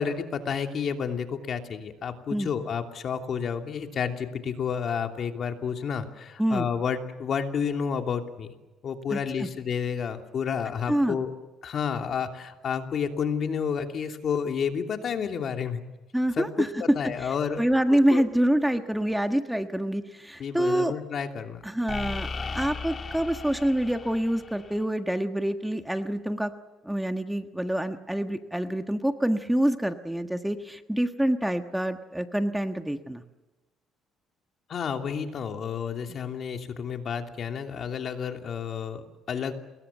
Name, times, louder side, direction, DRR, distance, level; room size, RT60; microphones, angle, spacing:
voice 1, 0.0-8.5 8.8-11.3 11.6-15.8 16.4-17.6 18.1-18.2 20.4-21.6 34.7-39.5, left 7 dB, 50° left, 5 dB, 2.9 m, -30 dB
voice 2, 9.1-9.5 10.9-11.2 16.1-16.8 17.2-20.9 21.6-26.5 26.8-33.2, right 1 dB, 5° right, 7 dB, 1.5 m, -26 dB
sound 1, 17.1-17.3 21.9-24.8, left 4 dB, 35° left, 2.7 m, -36 dB
28.5 x 21.5 x 7.4 m, 1.1 s
cardioid pair, 95°, 0 cm